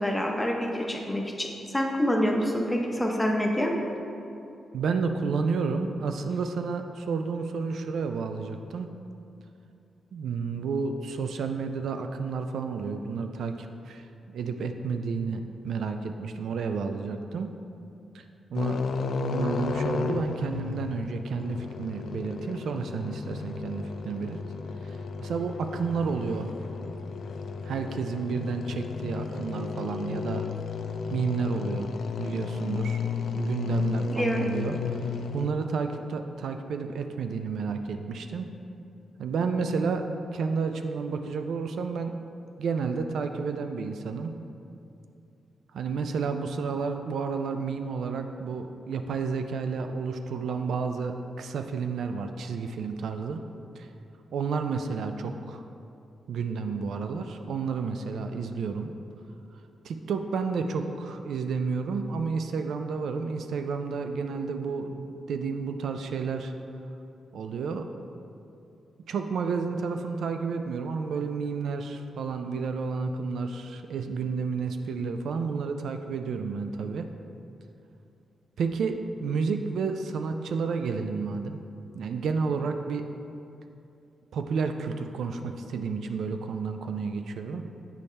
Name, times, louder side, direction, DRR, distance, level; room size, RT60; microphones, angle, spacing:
voice 1, 0.0-3.7 34.1-34.4, equal, 5° left, 0 dB, 0.6 m, -27 dB
voice 2, 4.7-8.9 10.1-17.5 18.1-18.2 18.5-18.8 19.3-24.4 24.8-26.5 27.6-30.5 31.1-31.9 32.2-33.0 33.4-38.5 39.2-40.1 40.3-42.2 42.6-44.4 45.7-53.4 53.8-53.9 54.3-55.6 56.3-58.9 59.8-66.5 67.3-67.9 69.1-77.1 78.6-81.6 81.9-83.1 84.3-87.6, right 5 dB, 75° right, 6 dB, 0.3 m, -31 dB
sound 1, 18.5-35.5, left 5 dB, 65° left, 0.3 m, -33 dB
8.3 x 4.1 x 3.3 m, 2.7 s
wide cardioid pair, 145°, 0 cm